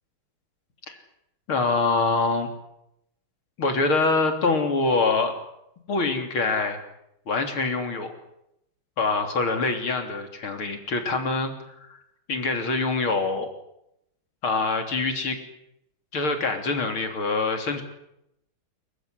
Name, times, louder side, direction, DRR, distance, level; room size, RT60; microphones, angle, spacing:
voice 1, 1.5-2.5 3.6-5.3 5.9-6.8 7.3-8.1 9.0-11.5 11.9-12.0 12.3-13.5 14.4-15.4 16.1-17.8, left 3 dB, 75° left, 5 dB, 4.1 m, -24 dB
27.5 x 15.5 x 9.8 m, 0.81 s
omnidirectional pair, 2.3 m